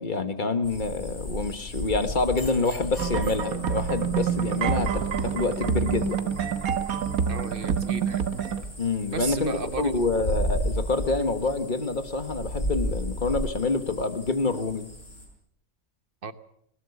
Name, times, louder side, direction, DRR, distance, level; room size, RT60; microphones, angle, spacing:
voice 1, 0.0-6.2 8.8-14.8, left 3 dB, 35° left, 9 dB, 1.6 m, -27 dB
sound 1, 0.6-15.3, equal, 55° left, 6.3 m, -35 dB
sound 2, 1.1-5.4, left 4 dB, 20° left, 5.3 m, -41 dB
sound 3, 3.0-8.6, right 7 dB, 80° right, 1.6 m, -27 dB
voice 2, 7.3-8.2 9.1-10.1 16.2-16.3, right 5 dB, 40° right, 12 dB, 1.2 m, -34 dB
20.0 x 19.5 x 7.1 m, 0.72 s
omnidirectional pair, 1.5 m